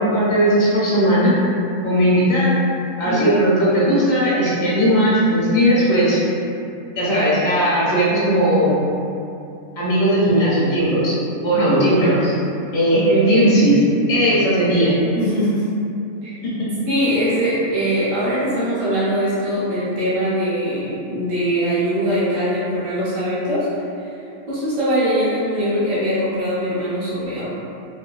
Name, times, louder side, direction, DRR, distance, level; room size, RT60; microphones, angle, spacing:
voice 1, 0.0-1.3 1.8-2.5 3.0-6.2 6.9-8.8 9.8-11.2 11.4-12.3 12.7-13.8 14.1-14.9 16.4-16.5, right 1 dB, 70° left, -8 dB, 1.1 m, -17 dB
voice 2, 3.1-3.4 11.5-11.9 12.9-13.5 15.1-15.7 16.2-16.3 16.9-24.2 24.5-27.5, equal, 60° right, -12 dB, 1.2 m, -22 dB
3.2 x 2.6 x 2.3 m, 2.6 s
omnidirectional pair, 1.6 m